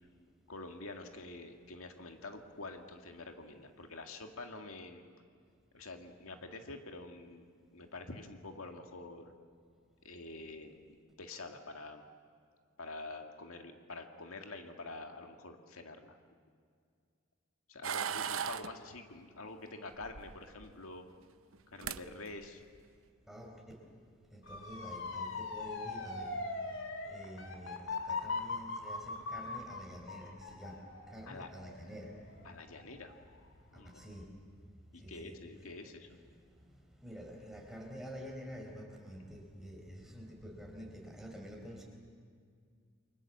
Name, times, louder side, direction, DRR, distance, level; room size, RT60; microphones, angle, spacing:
voice 1, 0.5-5.0 5.7-7.5 7.7-9.3 10.0-10.7 11.2-12.0 12.8-16.2 17.7-21.0 21.7-22.6 31.2-31.5 32.4-33.1 33.7-34.0 34.9-36.2, left 2 dB, 85° left, 5 dB, 2.0 m, -47 dB
sound 1, 17.8-18.7 20.0-20.7 21.5-21.6 21.8-22.0 22.4-22.8, right 8 dB, 75° right, 0.8 m, -37 dB
voice 2, 23.3-23.9 24.3-32.2 33.7-34.5 34.9-35.4 36.4-41.8, equal, ahead, 0 dB, 4.4 m, -48 dB
Motor vehicle (road) / Siren, 24.5-33.4 33.8-34.2, left 3 dB, 65° left, 2.4 m, -41 dB
29.5 x 24.0 x 7.3 m, 2.2 s
head